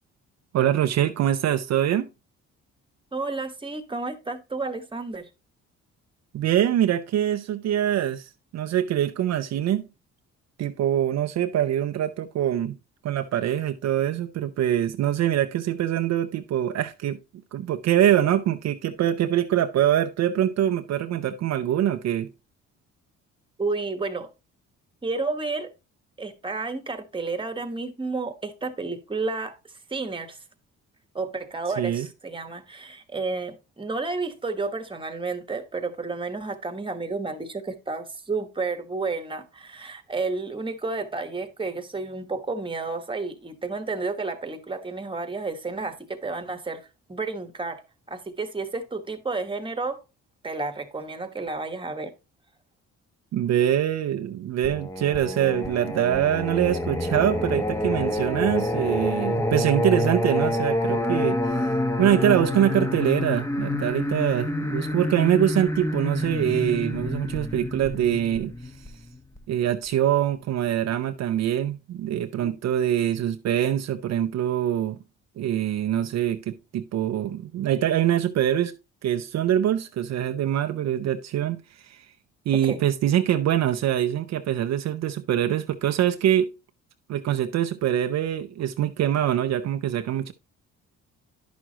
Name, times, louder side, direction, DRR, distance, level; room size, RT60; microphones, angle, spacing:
voice 1, 0.5-2.1 6.3-9.8 10.6-12.8 13.0-17.2 17.5-22.3 31.8-32.1 53.3-61.7 62.0-68.5 69.5-75.0 75.4-78.7 79.0-82.1 82.5-86.5 87.1-90.3, right 11 dB, 60° right, 0.6 m, -24 dB
voice 2, 3.1-5.3 23.6-24.3 25.0-25.7 26.2-29.6 29.9-30.4 31.1-46.8 47.1-47.8 48.1-50.0 50.4-52.1 72.4-72.5 82.5-82.8, right 3 dB, 15° right, 1.2 m, -31 dB
Singing, 54.6-69.4, left 1 dB, 10° left, 0.9 m, -27 dB
10.5 x 6.2 x 2.8 m
cardioid pair, 90°, 30 cm